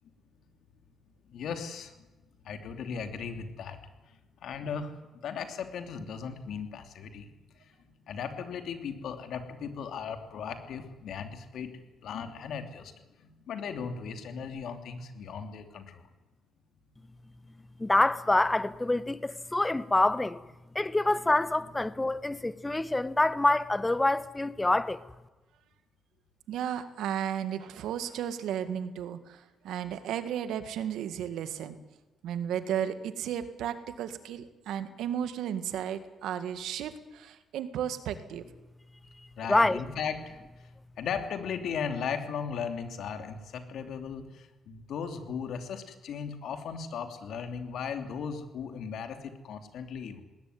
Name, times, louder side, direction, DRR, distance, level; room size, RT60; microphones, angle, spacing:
voice 1, 1.3-2.0 2.4-3.8 4.1-7.3 7.6-11.7 12.0-12.9 13.2-16.0 39.3-40.4 41.0-50.2, left 6 dB, 75° left, 3.1 m, -37 dB
voice 2, 17.8-20.4 20.7-25.0 39.5-39.8, left 2 dB, 15° left, 1.1 m, -26 dB
voice 3, 26.5-31.8 32.2-38.4, right 9 dB, 85° right, 1.9 m, -34 dB
20.0 x 18.5 x 9.6 m
cardioid pair, 85°, 0 cm